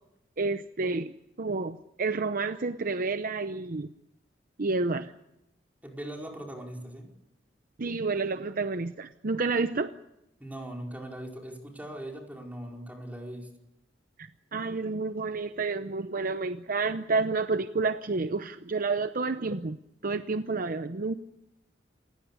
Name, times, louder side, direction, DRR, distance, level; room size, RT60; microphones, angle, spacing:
voice 1, 0.4-3.9 4.6-5.1 7.8-9.9 14.2-19.8 20.0-21.1, right 3 dB, 50° right, 10 dB, 0.8 m, -30 dB
voice 2, 5.8-7.1 10.4-13.5, right 1 dB, 10° right, 1 dB, 4.9 m, -40 dB
28.0 x 17.0 x 8.3 m, 0.87 s
head